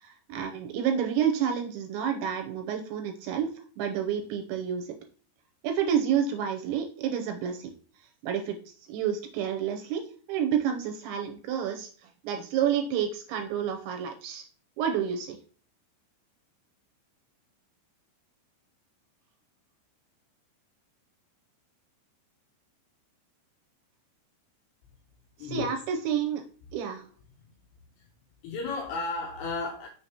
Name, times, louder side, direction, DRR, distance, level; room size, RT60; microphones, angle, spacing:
voice 1, 0.0-4.9 5.6-7.7 8.2-8.6 8.9-10.0 10.3-11.9 12.2-14.4 14.8-15.4 25.4-26.4 26.7-27.0, right 8 dB, 80° right, 4 dB, 2.8 m, -29 dB
voice 2, 25.4-25.8 28.0-28.1 28.4-29.9, left 3 dB, 80° left, 0 dB, 2.5 m, -33 dB
6.9 x 6.6 x 2.8 m, 0.42 s
omnidirectional pair, 5.8 m